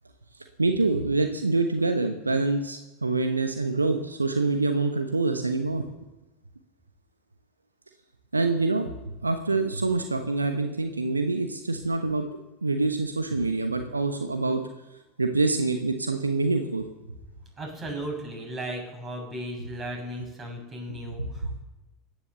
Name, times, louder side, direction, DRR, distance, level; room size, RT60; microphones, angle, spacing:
voice 1, 0.6-5.8 8.3-8.9 9.2-12.3 12.6-14.6 15.2-16.8 20.9-21.6, right 3 dB, 85° right, 6 dB, 1.1 m, -26 dB
voice 2, 17.6-21.6, right 1 dB, 25° right, 2 dB, 6.9 m, -36 dB
16.5 x 10.5 x 7.0 m, 1.1 s
figure-of-eight pair, 75°, 0 cm